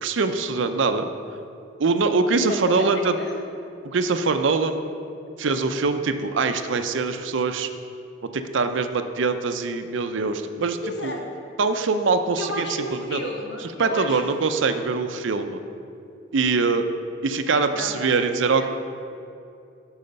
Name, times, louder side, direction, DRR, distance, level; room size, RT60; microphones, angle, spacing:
voice 1, 0.0-1.1 1.8-3.1 3.8-4.8 5.4-7.7 8.2-11.1 11.6-12.7 12.9-13.2 13.8-15.6 16.3-16.9 17.2-18.7, right 4 dB, 75° right, 8 dB, 0.5 m, -23 dB
voice 2, 2.5-3.3 10.8-11.4 12.4-14.3 17.7-18.2 18.6-18.7, left 1 dB, 60° left, 1 dB, 1.2 m, -32 dB
12.0 x 4.8 x 5.3 m, 2.6 s
head